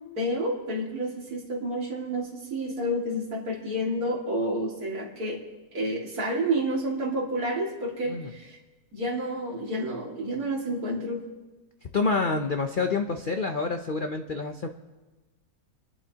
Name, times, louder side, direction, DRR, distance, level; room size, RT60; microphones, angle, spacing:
voice 1, 0.2-5.4 5.7-8.6 8.9-11.2, right 1 dB, 60° right, -2 dB, 2.7 m, -29 dB
voice 2, 11.8-14.7, left 4 dB, 90° left, 5 dB, 0.4 m, -28 dB
27.5 x 11.0 x 2.9 m, 1.2 s
omnidirectional pair, 1.9 m